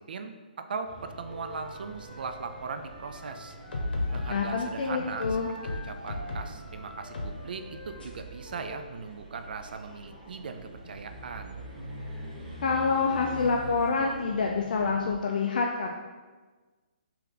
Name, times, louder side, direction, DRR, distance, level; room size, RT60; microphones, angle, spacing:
voice 1, 0.0-3.6 4.1-11.6, right 5 dB, 65° right, 7 dB, 0.4 m, -39 dB
sound 1, 0.8-15.1, right 1 dB, 40° right, 1.4 m, -45 dB
Wind instrument woodwind instrument, 1.2-4.8 5.1-8.9, left 1 dB, 10° left, 0.7 m, -47 dB
sound 2, 3.5-4.8 5.2-6.6 7.1-7.4 8.0-8.1, left 2 dB, 75° left, 0.9 m, -34 dB
voice 2, 4.3-5.5 12.6-15.9, left 4 dB, 55° left, 0 dB, 0.4 m, -27 dB
3.3 x 2.9 x 3.8 m, 1.3 s
hypercardioid pair, 160°, 5 cm